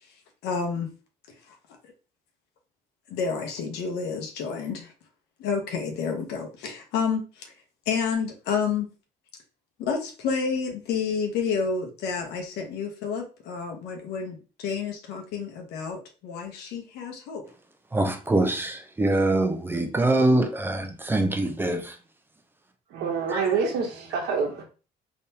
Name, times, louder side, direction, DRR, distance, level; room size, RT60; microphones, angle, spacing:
voice 1, 0.4-0.9 3.1-4.9 5.4-7.4 7.9-8.9 9.8-17.4, left 5 dB, 85° left, 0.9 m, -29 dB
voice 2, 17.9-22.0 23.3-23.5, right 2 dB, 10° right, 0.6 m, -24 dB
voice 3, 22.9-24.6, right 5 dB, 80° right, 1.1 m, -26 dB
3.6 x 3.0 x 2.8 m
cardioid pair, 110°, 17 cm